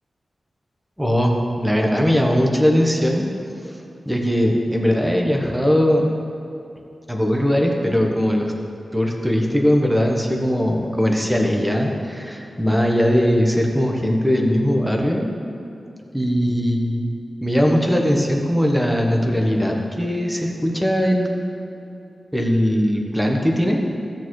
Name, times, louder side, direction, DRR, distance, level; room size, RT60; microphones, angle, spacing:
voice 1, 1.0-3.3 4.1-6.0 7.1-8.5 8.9-15.2 16.1-21.3 22.3-23.8, equal, 5° right, 1 dB, 1.0 m, -20 dB
15.0 x 6.6 x 3.2 m, 2.8 s
wide cardioid pair, 130°, 0 cm